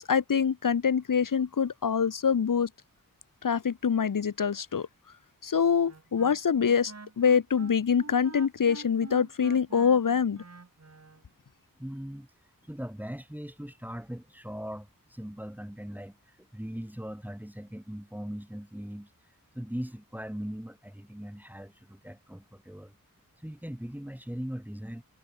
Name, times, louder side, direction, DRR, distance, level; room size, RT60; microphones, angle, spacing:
voice 1, 0.0-2.7 3.4-4.9 5.4-10.4, left 6 dB, 70° left, 1.2 m, -25 dB
Wind instrument woodwind instrument, 5.9-11.2, right 4 dB, 45° right, 4.5 m, -47 dB
voice 2, 11.8-12.3 12.6-19.1 19.5-22.9 23.4-25.0, equal, 5° right, 3.6 m, -40 dB
wide cardioid pair, 95°, 34 cm